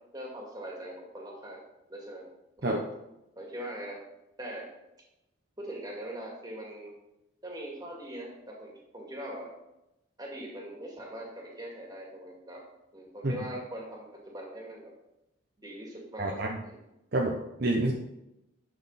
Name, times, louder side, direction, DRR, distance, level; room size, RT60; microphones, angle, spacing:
voice 1, 0.1-1.6 1.9-2.2 2.6-2.8 3.4-4.0 4.4-4.7 5.6-6.9 7.4-9.5 10.2-12.6 12.9-14.9 15.6-16.7, right 1 dB, 20° right, -2 dB, 2.3 m, -41 dB
voice 2, 17.1-17.9, right 2 dB, 50° right, 0 dB, 0.8 m, -28 dB
10.0 x 6.6 x 4.2 m, 0.90 s
head